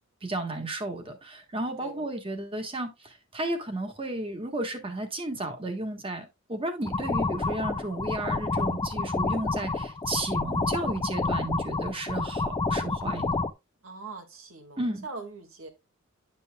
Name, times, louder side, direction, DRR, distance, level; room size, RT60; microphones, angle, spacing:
voice 1, 0.2-13.4 14.8-15.0, right 2 dB, 25° right, 1.4 m, -33 dB
sound 1, 6.9-13.5, left 3 dB, 20° left, 0.4 m, -29 dB
voice 2, 13.8-15.7, right 3 dB, 85° right, 1.8 m, -42 dB
10.5 x 5.5 x 2.2 m
head